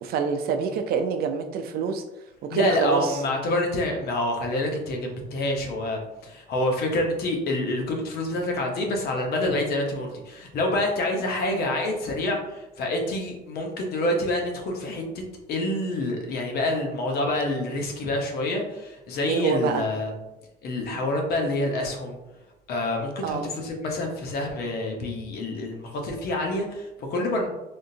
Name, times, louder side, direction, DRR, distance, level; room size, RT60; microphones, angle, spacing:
voice 1, 0.0-2.0 2.5-3.2 19.3-19.8 23.2-23.5, right 5 dB, 65° right, 7 dB, 0.4 m, -26 dB
voice 2, 2.5-20.1 20.6-22.2 22.7-27.5, left 1 dB, 70° left, 1 dB, 0.9 m, -27 dB
3.5 x 2.5 x 2.7 m, 0.96 s
cardioid pair, 110°, 17 cm